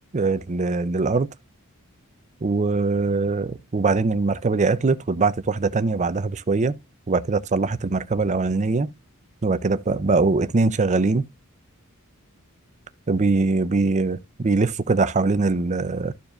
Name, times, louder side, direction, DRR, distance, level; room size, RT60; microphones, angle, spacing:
voice 1, 0.1-1.3 2.4-6.7 7.1-8.9 9.4-11.2 13.1-16.1, right 3 dB, 35° right, 0.5 m, -22 dB
13.5 x 4.8 x 2.5 m
head